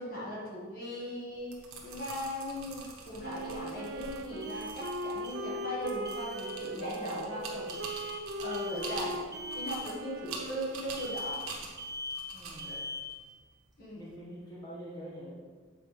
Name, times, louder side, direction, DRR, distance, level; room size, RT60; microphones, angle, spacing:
voice 1, 0.0-9.2 9.5-11.4 12.6-12.8 13.8-14.1, equal, 45° left, -6 dB, 1.4 m, -39 dB
sound 1, 1.2-1.3 4.4-5.0 5.2-5.8 6.1-6.6 7.7-8.2 8.5-9.0 9.3-9.8 11.0-11.5 11.8-12.3 12.6-13.2, left 2 dB, 20° right, 0.7 m, -41 dB
sound 2, 1.3-14.1, right 4 dB, 80° right, 1.2 m, -46 dB
Wind instrument woodwind instrument, 3.2-11.3, right 1 dB, 55° right, 0.4 m, -40 dB
voice 2, 12.3-12.8 13.9-15.3, equal, 20° left, -8 dB, 1.5 m, -45 dB
8.0 x 4.3 x 3.3 m, 1.5 s
head